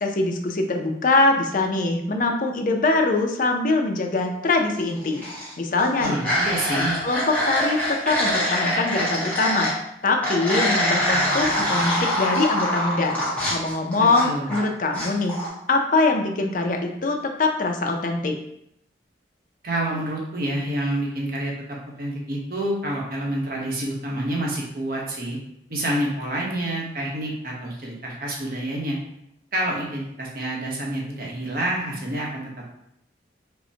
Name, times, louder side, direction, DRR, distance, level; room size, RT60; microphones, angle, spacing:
voice 1, 0.0-5.2 5.6-6.2 6.7-9.7 10.0-13.2 13.5-15.4 15.7-18.4, left 3 dB, 50° left, 3 dB, 0.5 m, -23 dB
sound 1, 5.0-5.5 5.8-9.7 10.2-14.6 14.9-15.5, equal, 10° left, 0.9 m, -24 dB
voice 2, 6.0-7.0 14.0-14.5 19.6-25.4 25.7-29.0 29.5-32.7, right 1 dB, 55° right, -2 dB, 0.9 m, -28 dB
5.2 x 2.1 x 2.8 m, 0.77 s
head